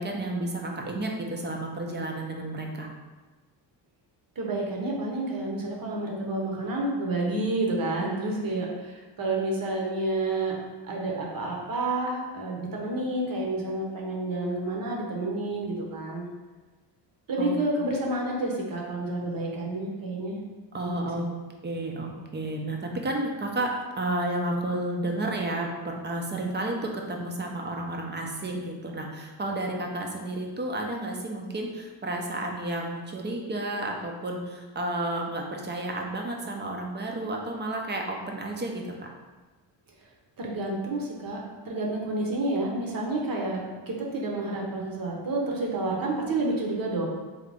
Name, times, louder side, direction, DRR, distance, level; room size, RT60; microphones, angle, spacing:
voice 1, 0.0-2.9 17.4-17.6 20.7-21.2 21.6-23.7 24.0-38.8, right 1 dB, 25° right, 1 dB, 0.5 m, -31 dB
voice 2, 4.4-10.5 10.8-16.3 17.3-20.4 20.8-21.5 40.4-47.1, right 2 dB, 50° right, -1 dB, 0.9 m, -29 dB
3.9 x 2.8 x 3.4 m, 1.3 s
cardioid pair, 125°, 44 cm